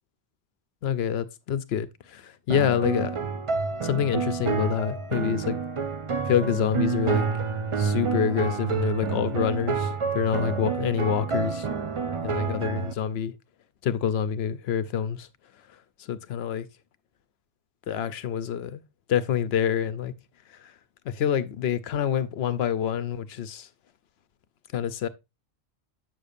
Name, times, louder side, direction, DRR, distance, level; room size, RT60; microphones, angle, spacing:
voice 1, 0.8-3.2 3.8-5.6 6.3-7.2 7.8-11.7 12.2-13.3 13.8-15.3 16.0-16.7 17.9-18.8 19.1-20.1 20.5-20.7 21.1-23.7 24.7-25.1, left 8 dB, 70° left, 0.8 m, -27 dB
sound 1, 2.5-12.9, right 5 dB, 40° right, 0.5 m, -28 dB
7.7 x 6.6 x 2.5 m
omnidirectional pair, 1.1 m